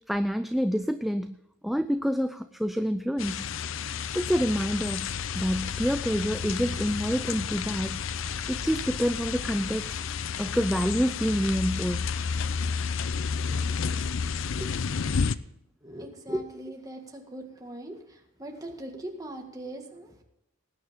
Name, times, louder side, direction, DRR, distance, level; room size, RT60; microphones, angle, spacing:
voice 1, 0.1-1.4 1.6-3.5 4.1-8.0 8.5-10.0 10.4-12.0 14.6-14.7 16.3-16.4, equal, ahead, 9 dB, 0.3 m, -27 dB
sound 1, 3.2-15.4, left 6 dB, 70° left, 0.5 m, -31 dB
voice 2, 15.8-20.2, right 1 dB, 15° right, 2 dB, 1.8 m, -41 dB
19.0 x 9.3 x 3.7 m, 0.84 s
head